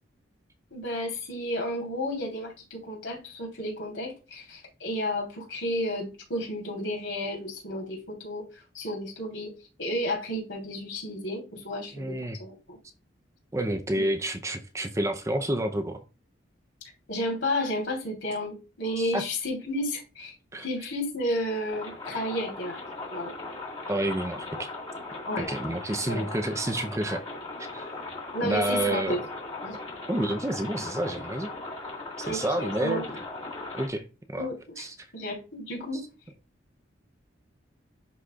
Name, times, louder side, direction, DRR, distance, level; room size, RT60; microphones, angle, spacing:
voice 1, 0.7-8.4 8.7-9.5 9.8-12.8 14.0-14.1 17.1-20.3 20.6-22.8 23.1-23.3 25.3-25.5 26.0-26.3 28.3-29.2 29.6-29.8 32.2-33.1 34.3-34.9 35.1-36.0, left 1 dB, 80° left, 3.5 m, -32 dB
voice 2, 11.9-12.4 13.5-16.0 19.0-19.2 20.5-20.7 23.9-24.7 25.4-27.2 27.7-27.9 28.4-29.2 30.1-31.5 32.2-33.0 33.7-34.5 34.8-35.1, right 1 dB, 15° right, 0.6 m, -29 dB
sound 1, 21.7-33.9, left 3 dB, 30° left, 1.8 m, -38 dB
11.0 x 4.2 x 2.4 m
head